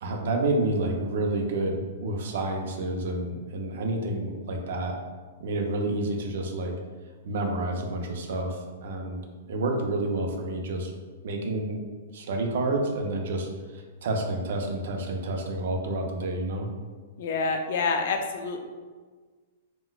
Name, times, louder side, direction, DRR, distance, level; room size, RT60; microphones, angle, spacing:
voice 1, 0.0-5.0 5.4-6.7 7.2-9.2 9.5-10.9 11.2-11.8 12.1-16.7, right 2 dB, 65° right, 2 dB, 0.5 m, -29 dB
voice 2, 17.2-18.7, left 4 dB, 55° left, 5 dB, 0.4 m, -27 dB
3.9 x 2.2 x 2.3 m, 1.4 s
hypercardioid pair, 160°, 0 cm